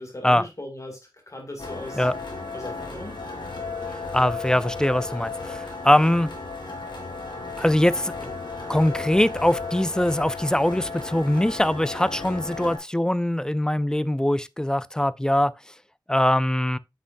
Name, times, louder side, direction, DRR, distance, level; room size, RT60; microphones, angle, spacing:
voice 1, 0.0-2.1 2.5-3.2, left 1 dB, 40° left, 2.5 m, -38 dB
sound 1, 1.6-12.8, left 3 dB, 75° left, 3.3 m, -34 dB
voice 2, 4.1-6.3 7.6-8.3 8.7-15.5 16.1-16.8, left 1 dB, 10° left, 0.5 m, -22 dB
9.8 x 6.1 x 2.6 m
wide cardioid pair, 70°, 8 cm